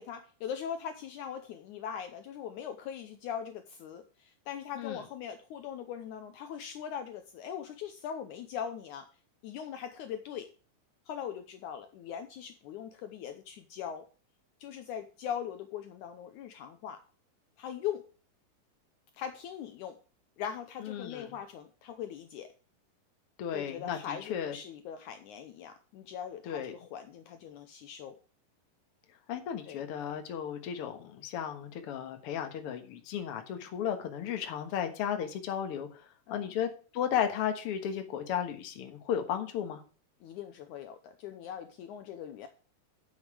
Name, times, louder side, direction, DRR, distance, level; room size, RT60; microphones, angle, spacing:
voice 1, 0.0-9.0 9.4-10.5 11.1-14.1 14.6-17.0 17.6-18.0 19.1-20.0 20.4-22.5 23.5-28.2 29.7-29.8 36.3-36.5 40.2-42.5, left 8 dB, 75° left, 8 dB, 2.0 m, -40 dB
voice 2, 20.8-21.3 23.4-24.6 26.5-26.7 29.3-35.9 36.3-39.8, left 9 dB, 55° left, 6 dB, 1.9 m, -34 dB
9.2 x 7.3 x 4.9 m, 0.37 s
omnidirectional pair, 3.9 m